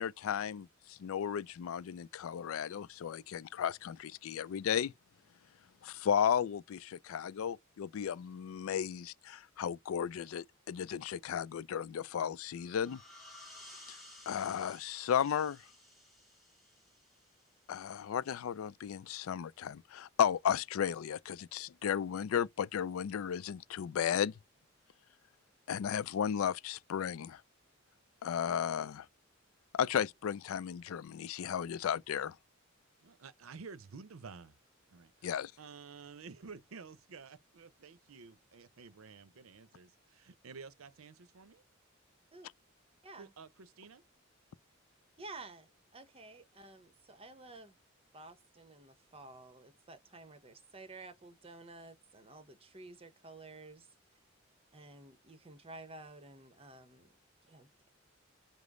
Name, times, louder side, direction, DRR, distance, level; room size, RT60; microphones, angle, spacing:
voice 1, 0.0-4.9 5.8-13.0 13.9-14.0 14.3-15.6 17.7-24.3 25.7-27.4 28.2-29.1 29.7-32.4 35.2-35.5, left 8 dB, 85° left, 0.3 m, -34 dB
sound 1, 12.5-17.9, left 1 dB, ahead, 2.3 m, -56 dB
voice 2, 33.0-34.6 34.9-41.6 43.2-44.0, right 5 dB, 90° right, 0.6 m, -51 dB
voice 3, 45.2-47.8 48.1-53.9 54.7-57.1 57.4-57.7, right 2 dB, 30° right, 0.8 m, -52 dB
5.0 x 2.0 x 3.6 m
head